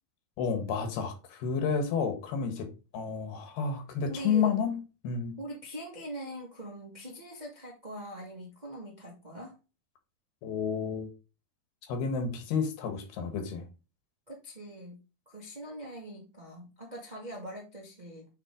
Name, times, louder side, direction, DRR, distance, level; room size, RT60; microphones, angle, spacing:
voice 1, 0.4-5.4 10.4-11.1 11.9-13.7, left 6 dB, 70° left, 3.3 m, -31 dB
voice 2, 4.0-4.5 5.4-9.5 14.3-15.0 15.2-18.3, right 1 dB, 25° right, 0.9 m, -42 dB
9.1 x 3.9 x 3.8 m
omnidirectional pair, 4.8 m